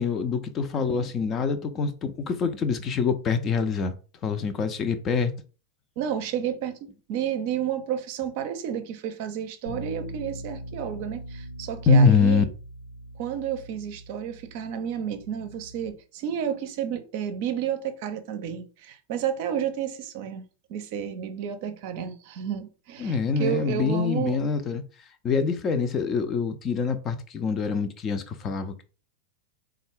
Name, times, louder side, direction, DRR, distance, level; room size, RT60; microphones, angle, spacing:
voice 1, 0.0-4.0 4.2-5.3 11.9-12.5 23.0-24.8 25.2-28.8, left 5 dB, 30° left, 0.5 m, -24 dB
voice 2, 6.0-12.5 13.2-24.4, right 9 dB, 50° right, 0.6 m, -31 dB
Bass guitar, 9.7-15.9, equal, 70° left, 0.8 m, -41 dB
3.8 x 2.3 x 3.5 m
figure-of-eight pair, 90°, 0 cm